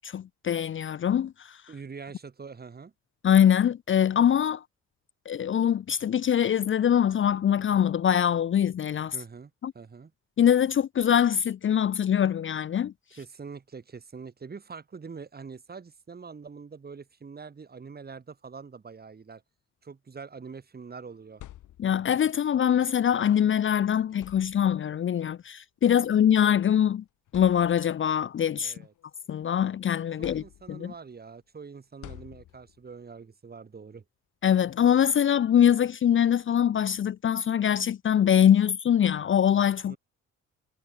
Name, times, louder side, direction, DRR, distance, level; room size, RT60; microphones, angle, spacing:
voice 1, 0.0-1.6 3.2-4.6 5.3-9.2 9.6-9.7 10.4-12.9 21.8-27.0 27.3-28.7 29.3-30.4 30.7-30.9 34.4-40.0, left 9 dB, 40° left, 0.6 m, -23 dB
voice 2, 1.7-2.9 9.1-10.1 13.1-19.4 19.8-21.4 25.9-26.0 28.6-28.9 30.2-34.0 39.9-40.0, right 5 dB, 30° right, 2.3 m, -44 dB
sound 1, 21.1-22.2 23.5-23.6 24.1-25.0 26.1-26.2 26.8-26.9 27.3-28.1 28.6-29.6 30.2-31.0 32.0-32.9, left 13 dB, 80° left, 3.9 m, -49 dB
cardioid pair, 90°, 30 cm